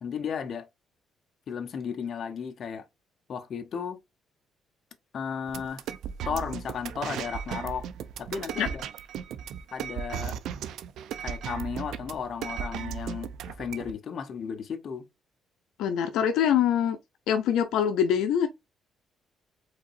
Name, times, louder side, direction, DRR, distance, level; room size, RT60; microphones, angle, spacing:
voice 1, 0.0-0.7 1.5-2.9 3.3-4.0 5.1-5.9 6.2-7.9 8.2-8.8 9.7-10.4 11.2-15.0, left 6 dB, 55° left, 0.9 m, -34 dB
sound 1, 5.5-13.9, right 9 dB, 80° right, 0.5 m, -36 dB
voice 2, 15.8-17.0 17.3-18.5, left 9 dB, 90° left, 0.7 m, -24 dB
5.0 x 4.0 x 2.6 m
cardioid pair, 90°, 0 cm